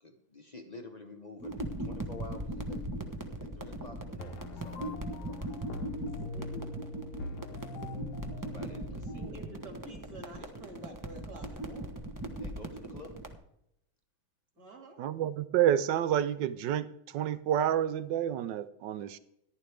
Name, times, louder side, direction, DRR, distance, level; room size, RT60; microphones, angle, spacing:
voice 1, 0.0-2.9 3.4-5.7 8.4-9.4 12.4-13.3, left 2 dB, 35° left, 4 dB, 0.7 m, -49 dB
sound 1, 1.4-13.3, right 1 dB, 20° right, 0.5 m, -39 dB
sound 2, 4.2-10.2, left 1 dB, 80° left, 2.0 m, -43 dB
voice 2, 6.3-6.8 9.1-11.9 14.6-15.0, right 1 dB, 45° right, 3 dB, 2.6 m, -48 dB
voice 3, 15.0-16.9 17.1-19.2, right 10 dB, 70° right, 14 dB, 1.1 m, -29 dB
14.5 x 11.0 x 3.4 m, 0.78 s
omnidirectional pair, 2.3 m